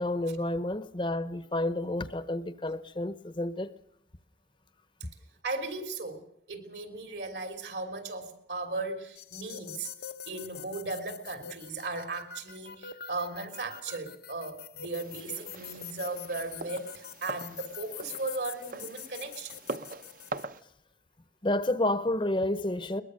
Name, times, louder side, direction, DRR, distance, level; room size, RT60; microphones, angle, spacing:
voice 1, 0.0-3.7 21.4-23.0, left 1 dB, 25° left, 0.8 m, -30 dB
voice 2, 5.4-6.2 6.5-9.9 10.3-19.6, right 3 dB, 70° right, 3.3 m, -37 dB
sound 1, 9.2-20.4, left 8 dB, 60° left, 0.7 m, -45 dB
sound 2, 14.9-20.6, right 3 dB, 50° right, 0.8 m, -43 dB
22.0 x 21.0 x 6.5 m
head